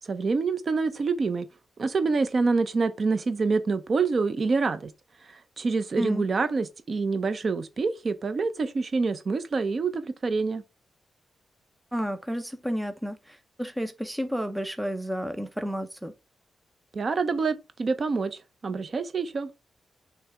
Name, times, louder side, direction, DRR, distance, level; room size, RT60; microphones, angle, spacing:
voice 1, 0.0-1.5 1.8-4.9 5.2-10.6 16.9-19.5, right 4 dB, 40° right, 0.7 m, -26 dB
voice 2, 11.9-16.1, equal, 5° right, 0.8 m, -31 dB
6.6 x 3.3 x 4.7 m
wide cardioid pair, 145°, 0 cm